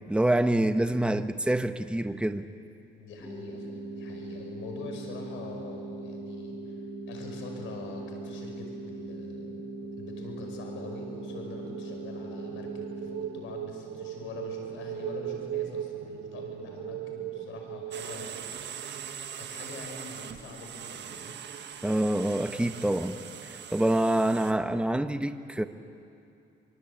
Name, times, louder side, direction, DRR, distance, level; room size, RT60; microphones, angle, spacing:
voice 1, 0.1-2.5 21.8-23.2 23.4-25.6, right 1 dB, 5° right, 9 dB, 1.1 m, -26 dB
voice 2, 0.9-1.5 3.0-6.8 7.1-9.7 10.0-18.4 19.4-21.3, left 4 dB, 80° left, 2 dB, 5.5 m, -44 dB
sound 1, 3.2-13.2, right 2 dB, 15° left, 6.1 m, -40 dB
sound 2, 10.2-19.1, right 10 dB, 85° right, 0.8 m, -39 dB
sound 3, 17.9-24.5, right 8 dB, 60° right, 1.5 m, -41 dB
25.5 x 23.5 x 8.4 m, 2.6 s
cardioid pair, 90°, 20 cm